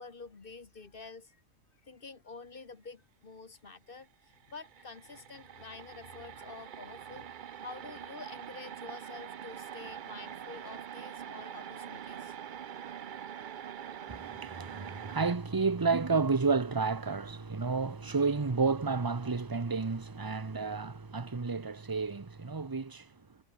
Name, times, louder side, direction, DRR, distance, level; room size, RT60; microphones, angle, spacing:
voice 1, 0.0-1.4 1.8-7.3 7.6-12.4 14.3-14.9, left 4 dB, 45° left, 1.8 m, -48 dB
sound 1, 4.0-4.1 4.3-15.4, right 9 dB, 50° right, 0.6 m, -44 dB
voice 2, 14.1-23.1, right 4 dB, 20° right, 0.8 m, -31 dB
omnidirectional pair, 1.4 m